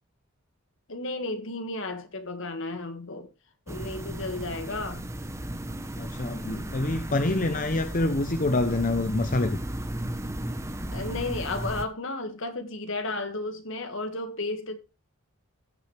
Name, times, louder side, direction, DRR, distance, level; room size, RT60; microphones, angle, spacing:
voice 1, 0.9-3.3 3.7-5.0 10.9-14.8, left 2 dB, 60° left, 1.9 m, -33 dB
sound 1, 3.7-11.9, right 1 dB, 15° right, 1.0 m, -35 dB
voice 2, 6.0-9.6, left 2 dB, 40° left, 0.7 m, -26 dB
17.0 x 6.1 x 3.3 m
head